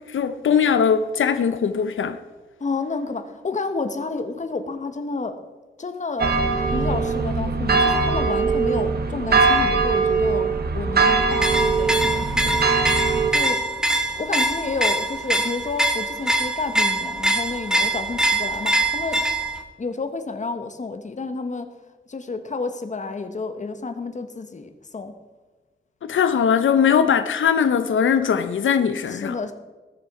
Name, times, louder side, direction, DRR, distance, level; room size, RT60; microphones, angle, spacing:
voice 1, 0.1-2.2 26.0-29.4, left 7 dB, 85° left, 0.6 m, -20 dB
voice 2, 2.6-5.4 5.8-6.4 6.7-12.6 13.3-13.7 14.1-19.2 19.8-21.7 22.1-25.1 29.1-29.5, left 3 dB, 40° left, 1.1 m, -30 dB
sound 1, 6.2-13.3, right 4 dB, 55° right, 1.2 m, -21 dB
sound 2, 11.3-19.6, right 1 dB, 5° right, 1.1 m, -23 dB
19.0 x 7.0 x 4.8 m
wide cardioid pair, 145°, 20 cm